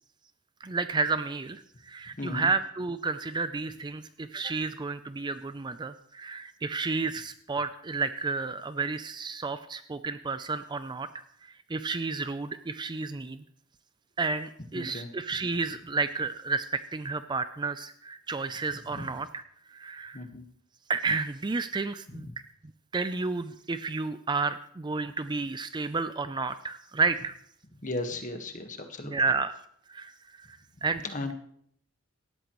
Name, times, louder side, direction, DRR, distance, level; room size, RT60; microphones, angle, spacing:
voice 1, 0.6-11.2 11.7-13.4 14.2-19.4 19.7-20.2 20.9-22.3 22.9-27.3 29.0-29.6 29.9-30.1 30.5-31.0, right 4 dB, 20° right, 11 dB, 0.4 m, -31 dB
voice 2, 2.2-2.5 14.7-15.1 18.9-19.0 20.1-20.4 22.1-22.3 27.8-29.2 31.0-31.3, left 2 dB, 35° left, 6 dB, 1.4 m, -36 dB
18.0 x 13.0 x 3.1 m, 0.65 s
head